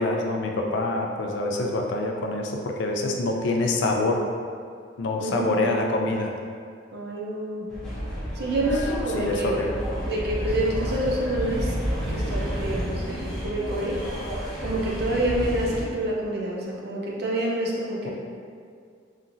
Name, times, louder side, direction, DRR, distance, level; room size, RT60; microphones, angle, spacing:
voice 1, 0.0-4.2 5.0-6.3 8.6-8.7 9.2-9.8, left 2 dB, 65° left, 1 dB, 0.3 m, -26 dB
voice 2, 5.2-5.6 6.9-7.7 8.4-9.6 10.0-11.7 12.1-13.1 13.4-14.0 14.6-18.1, right 1 dB, 55° right, -3 dB, 0.5 m, -27 dB
sound 1, 7.7-15.8, equal, 5° left, 0.5 m, -30 dB
2.9 x 2.5 x 2.5 m, 2.2 s
head